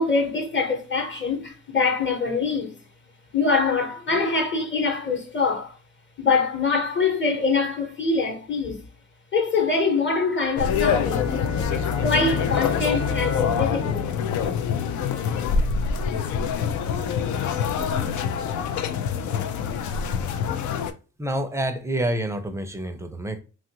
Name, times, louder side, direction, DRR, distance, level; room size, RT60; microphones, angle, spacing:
voice 1, 0.0-2.8 3.3-5.8 6.2-8.8 9.3-11.3 11.6-14.1, left 4 dB, 40° left, 1.1 m, -24 dB
sound 1, 10.6-20.9, left 6 dB, 75° left, 0.5 m, -25 dB
Bowed string instrument, 10.6-15.3, left 3 dB, 15° left, 0.8 m, -35 dB
voice 2, 21.2-23.4, right 1 dB, 10° right, 0.5 m, -27 dB
2.9 x 2.4 x 2.8 m
cardioid pair, 90°, 30 cm